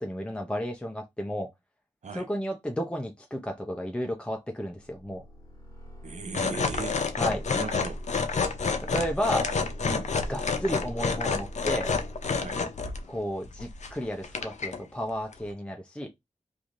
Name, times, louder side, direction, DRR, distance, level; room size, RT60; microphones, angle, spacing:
voice 1, 0.0-1.5 2.1-5.2 7.2-7.4 8.8-9.4 10.3-11.9 13.1-16.1, equal, 10° left, 0.6 m, -32 dB
sound 1, 4.6-12.7, equal, 25° left, 1.5 m, -42 dB
voice 2, 6.0-7.0 7.5-8.0 9.3-9.5 9.9-10.1 12.4-12.6, right 4 dB, 65° right, 0.6 m, -37 dB
sound 2, 6.3-13.0 13.4-13.9 14.2-14.8 15.3-15.4, left 5 dB, 65° left, 0.5 m, -29 dB
3.0 x 2.6 x 2.5 m
wide cardioid pair, 60°, 13 cm